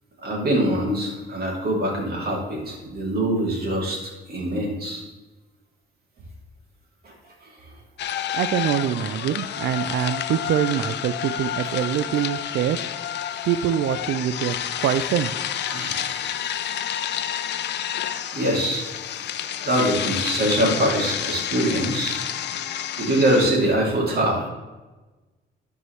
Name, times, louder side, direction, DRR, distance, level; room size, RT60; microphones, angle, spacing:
voice 1, 0.2-4.0 4.3-5.0 7.0-7.7 15.7-16.4 18.3-18.8 19.6-22.2 23.0-24.5, right 1 dB, 50° right, -2 dB, 2.8 m, -24 dB
sound 1, 8.0-23.5, left 10 dB, 60° left, 0.5 m, -29 dB
voice 2, 8.3-12.8 13.5-15.3, right 10 dB, 70° right, 10 dB, 0.4 m, -24 dB
12.0 x 4.7 x 3.2 m, 1.2 s
cardioid pair, 90°, 20 cm